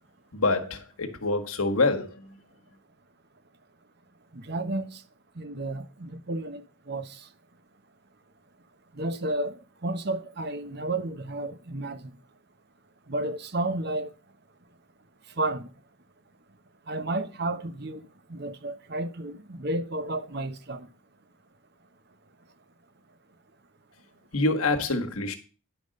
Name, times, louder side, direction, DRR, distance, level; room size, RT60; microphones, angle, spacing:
voice 1, 0.3-2.3 24.3-25.4, left 3 dB, 80° left, 1.5 m, -26 dB
voice 2, 4.3-4.9 5.4-6.6 6.9-7.1 9.0-9.5 9.8-12.0 13.1-14.1 15.4-15.7 16.9-18.0 18.3-20.9, right 2 dB, 50° right, 0.9 m, -31 dB
10.5 x 5.3 x 6.4 m
head